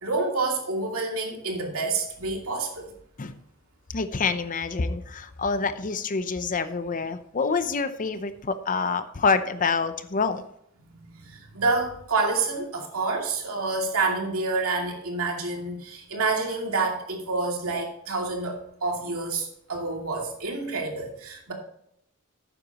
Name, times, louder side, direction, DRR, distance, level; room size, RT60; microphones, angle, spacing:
voice 1, 0.0-2.9 10.8-21.5, right 3 dB, 80° right, 0 dB, 2.5 m, -28 dB
voice 2, 3.9-10.4, left 4 dB, 40° left, 11 dB, 0.6 m, -27 dB
12.0 x 9.0 x 3.0 m, 0.73 s
head